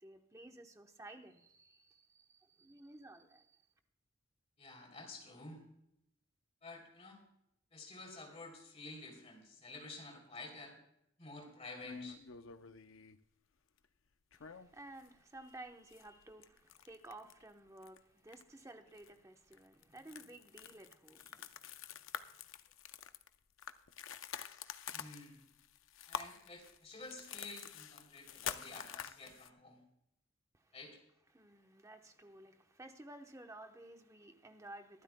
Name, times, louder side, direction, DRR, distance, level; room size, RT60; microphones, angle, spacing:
voice 1, 0.0-3.6 14.3-21.8 30.5-30.8 31.3-35.0, right 1 dB, 15° right, 0.9 m, -54 dB
voice 2, 4.6-5.6 6.6-7.2 7.7-10.7 11.2-12.2 24.9-25.4 26.1-29.8 30.7-31.0, left 3 dB, 30° left, 3.0 m, -51 dB
sound 1, 11.8-13.2 14.3-15.1 15.4-15.5 15.9-17.4 17.8-18.0 18.3-18.6 19.0-19.1 19.5-29.5, left 8 dB, 70° left, 0.6 m, -47 dB
23.0 x 12.0 x 2.2 m
head